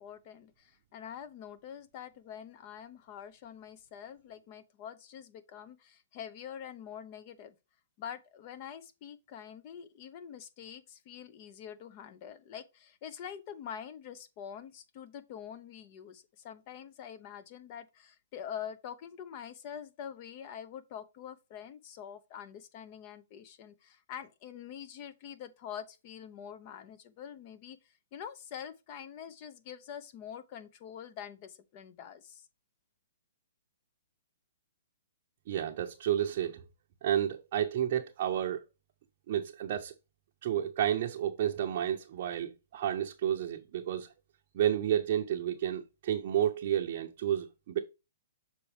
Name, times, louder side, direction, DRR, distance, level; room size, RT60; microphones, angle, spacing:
voice 1, 0.0-7.5 8.0-32.5, left 8 dB, 40° left, 0.8 m, -45 dB
voice 2, 35.5-36.6 37.0-38.6 39.3-39.9 40.4-44.1 44.5-47.8, right 10 dB, 50° right, 0.6 m, -31 dB
6.9 x 4.4 x 3.3 m
hypercardioid pair, 135°, 0 cm